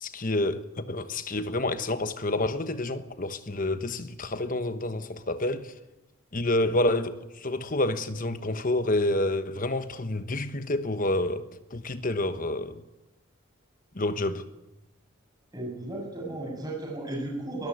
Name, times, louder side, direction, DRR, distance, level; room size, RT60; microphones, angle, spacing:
voice 1, 0.0-5.7 6.3-12.8 13.9-14.4, left 2 dB, 40° left, 1.2 m, -28 dB
voice 2, 15.5-17.7, right 2 dB, 20° right, 7.8 m, -34 dB
22.5 x 14.0 x 9.5 m
head